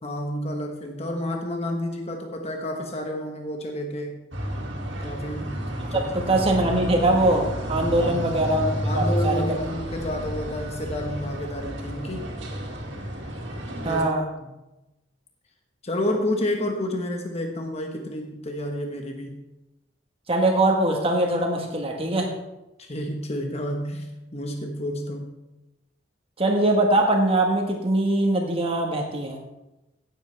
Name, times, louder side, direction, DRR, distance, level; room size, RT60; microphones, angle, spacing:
voice 1, 0.0-4.2 5.0-6.5 8.0-8.3 8.8-12.3 13.7-14.1 14.4-14.6 15.8-19.4 22.8-25.4, left 1 dB, 35° left, 3 dB, 1.2 m, -30 dB
sound 1, 4.3-14.0, equal, 70° right, 2.4 m, -31 dB
voice 2, 6.1-9.4 13.8-14.2 20.3-22.3 26.4-29.4, right 1 dB, 30° right, 1 dB, 1.4 m, -22 dB
16.5 x 8.0 x 3.4 m, 0.98 s
head